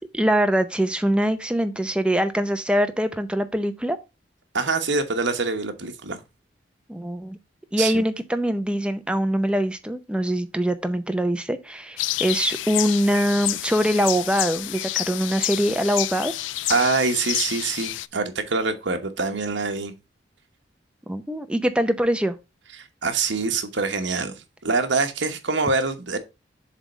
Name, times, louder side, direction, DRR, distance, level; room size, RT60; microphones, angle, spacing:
voice 1, 0.1-4.0 6.9-7.4 7.7-16.3 21.1-22.3, equal, 5° right, 0.6 m, -23 dB
voice 2, 4.5-6.2 7.8-8.0 16.7-19.9 22.8-26.2, right 4 dB, 75° right, 1.1 m, -25 dB
sound 1, 12.0-18.1, left 15 dB, 85° left, 0.3 m, -29 dB
7.3 x 3.5 x 5.1 m
head